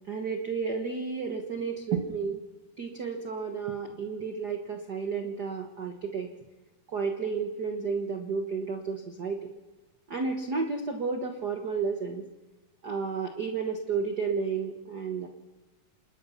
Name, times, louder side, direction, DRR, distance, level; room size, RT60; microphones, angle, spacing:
voice 1, 0.1-2.4 2.8-6.3 6.9-9.5 10.1-12.2 12.8-15.3, right 5 dB, 60° right, 4 dB, 1.1 m, -32 dB
27.5 x 20.5 x 5.7 m, 1.2 s
omnidirectional pair, 3.8 m